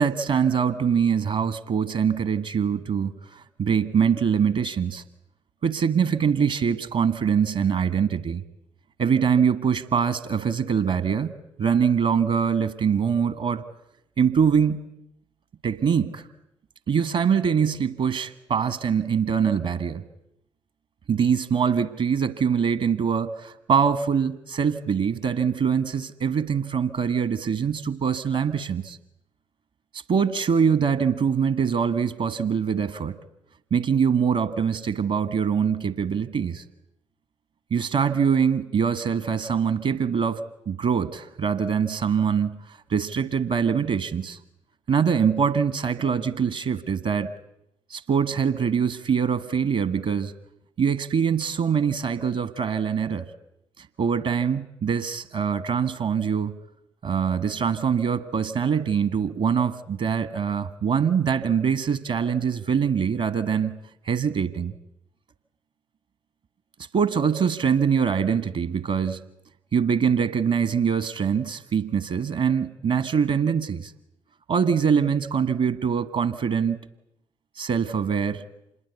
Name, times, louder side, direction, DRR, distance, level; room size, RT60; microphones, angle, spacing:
voice 1, 0.0-5.0 5.6-8.4 9.0-11.3 11.6-13.6 14.2-14.8 15.6-16.3 16.9-20.0 21.1-29.0 29.9-33.2 33.7-36.6 37.7-44.4 44.9-47.3 47.9-50.3 50.8-53.3 53.8-56.6 57.0-63.8 64.0-64.7 66.9-69.2 69.7-73.9 74.5-76.8 77.6-78.4, right 7 dB, 55° right, 14 dB, 1.3 m, -23 dB
26.5 x 21.5 x 8.2 m, 0.77 s
hypercardioid pair, 45°, 14 cm